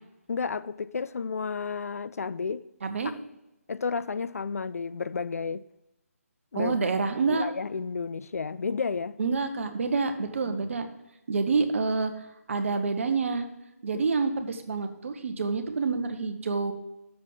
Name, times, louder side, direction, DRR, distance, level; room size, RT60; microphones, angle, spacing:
voice 1, 0.3-2.6 3.7-5.6 6.5-6.8 7.3-9.2 13.9-14.0, left 5 dB, 70° left, 0.4 m, -32 dB
voice 2, 2.8-3.1 6.5-7.5 9.2-10.9 11.3-12.1 12.5-13.4 13.8-16.7, right 4 dB, 55° right, 1.0 m, -27 dB
7.0 x 5.0 x 6.6 m
figure-of-eight pair, 150°, 8 cm